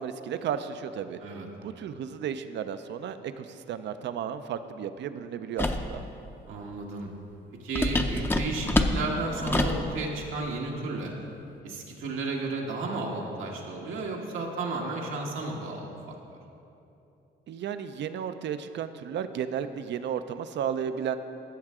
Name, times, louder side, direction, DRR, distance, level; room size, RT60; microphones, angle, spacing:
voice 1, 0.0-1.2 1.6-6.0 17.5-21.2, right 8 dB, 65° right, 11 dB, 0.5 m, -33 dB
sound 1, 5.6-5.9 7.7-9.9, left 2 dB, 10° left, 0.6 m, -26 dB
voice 2, 6.5-7.1 7.6-11.1 11.6-15.9, right 3 dB, 85° right, -1 dB, 1.4 m, -33 dB
13.5 x 6.5 x 3.6 m, 2.8 s
cardioid pair, 90°, 20 cm